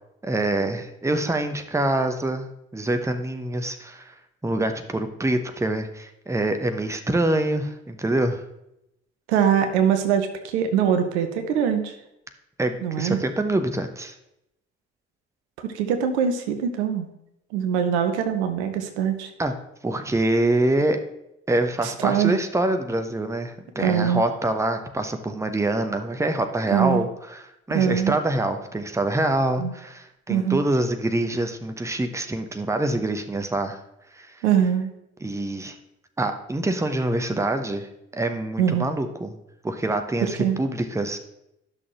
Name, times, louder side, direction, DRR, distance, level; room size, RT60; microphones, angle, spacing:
voice 1, 0.2-4.1 4.4-8.4 12.6-14.1 19.4-19.5 19.8-21.0 21.5-33.8 34.1-34.3 35.2-35.7 36.2-39.4 39.6-41.2, right 1 dB, 10° right, 7 dB, 0.9 m, -25 dB
voice 2, 9.3-11.9 12.8-13.2 15.6-17.1 17.5-19.3 21.8-22.3 23.8-24.2 26.7-27.0 27.7-28.2 29.6-29.7 30.3-30.6 34.4-34.9 38.6-38.9 40.2-40.6, right 8 dB, 70° right, 7 dB, 0.8 m, -23 dB
12.0 x 6.2 x 3.0 m, 0.84 s
figure-of-eight pair, 40°, 34 cm